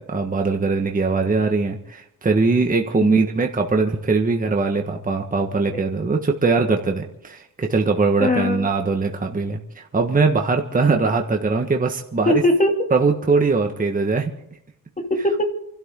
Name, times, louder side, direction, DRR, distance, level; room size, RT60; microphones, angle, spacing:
voice 1, 0.0-12.4 12.9-14.3, right 4 dB, 20° right, 3 dB, 1.5 m, -21 dB
voice 2, 8.2-8.7 12.3-12.9 15.0-15.4, left 1 dB, 20° left, 4 dB, 2.7 m, -20 dB
28.5 x 12.5 x 3.8 m, 0.79 s
cardioid pair, 110°, 37 cm